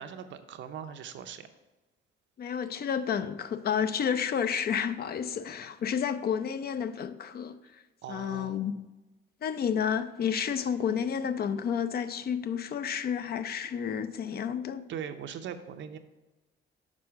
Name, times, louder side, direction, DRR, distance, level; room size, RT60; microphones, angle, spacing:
voice 1, 0.0-1.5 8.0-8.7 14.9-16.0, right 8 dB, 70° right, 0.6 m, -40 dB
voice 2, 2.4-7.8 8.1-8.7 9.4-14.9, left 7 dB, 50° left, 0.5 m, -31 dB
6.1 x 4.3 x 5.7 m
cardioid pair, 90°, 20 cm